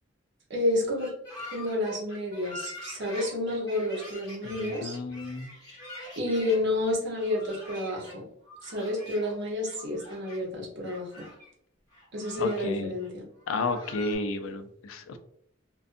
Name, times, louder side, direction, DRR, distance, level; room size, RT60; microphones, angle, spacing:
voice 1, 0.5-1.1 1.5-5.0 6.2-8.2 8.6-11.3 12.1-13.3, left 1 dB, 60° right, -2 dB, 0.9 m, -30 dB
sound 1, 1.0-6.6 7.2-8.2 8.4-9.4 9.6-10.4 10.8-11.5 11.9-12.7 13.0-13.1 13.4-14.2, left 1 dB, 20° left, 1.3 m, -44 dB
voice 2, 4.4-5.5 12.4-12.9 13.5-15.2, left 3 dB, 90° left, 7 dB, 0.4 m, -32 dB
2.5 x 2.3 x 2.5 m, 0.69 s
head